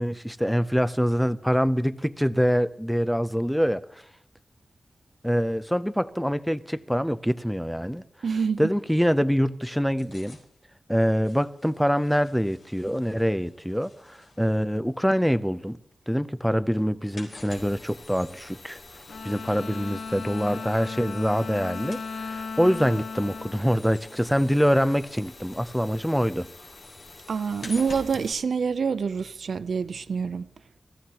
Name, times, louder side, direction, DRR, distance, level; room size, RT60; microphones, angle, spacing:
voice 1, 0.0-3.8 5.2-8.0 8.6-10.4 10.9-15.8 16.1-18.8 19.2-26.5, equal, ahead, 0.5 m, -25 dB
voice 2, 8.2-8.6 27.3-30.5, right 5 dB, 80° right, 0.5 m, -26 dB
sound 1, 9.9-15.9 16.2-25.9 26.3-29.4 29.7-29.8, left 2 dB, 75° left, 4.5 m, -48 dB
sound 2, 17.5-28.3, left 2 dB, 55° left, 4.5 m, -48 dB
Bowed string instrument, 19.1-24.6, left 5 dB, 90° left, 1.1 m, -37 dB
24.5 x 14.5 x 2.9 m
wide cardioid pair, 130°, 0 cm